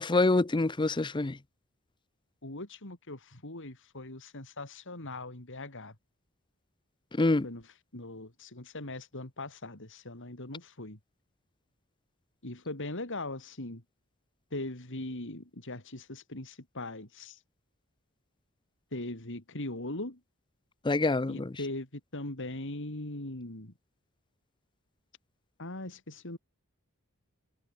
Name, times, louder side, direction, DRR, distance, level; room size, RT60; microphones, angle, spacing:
voice 1, 0.0-1.4 7.1-7.5 20.8-21.5, left 2 dB, 20° left, 0.6 m, -26 dB
voice 2, 2.4-5.9 7.4-7.6 7.9-11.0 12.4-13.8 14.5-17.4 18.9-20.2 21.3-23.7 25.6-26.4, left 2 dB, 60° left, 4.1 m, -40 dB
head